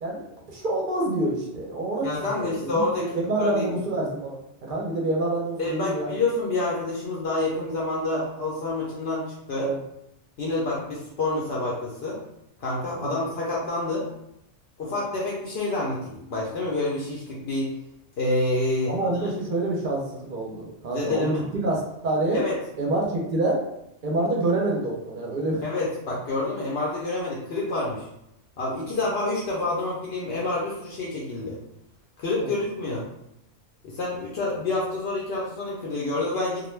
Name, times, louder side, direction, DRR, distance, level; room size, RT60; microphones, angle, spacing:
voice 1, 0.0-4.4 4.6-6.1 9.5-9.8 13.0-13.2 14.9-15.0 18.9-22.4 22.8-23.6 24.0-25.6 32.4-32.6, right 2 dB, 55° right, -2 dB, 0.7 m, -27 dB
voice 2, 2.0-3.6 5.6-9.7 10.4-12.2 12.6-14.1 14.8-17.7 18.2-19.3 20.9-21.5 22.3-22.6 25.6-28.1 28.6-31.6 32.2-33.1 33.8-36.7, left 2 dB, 65° left, -5 dB, 0.8 m, -28 dB
2.3 x 2.1 x 3.1 m, 0.82 s
omnidirectional pair, 1.2 m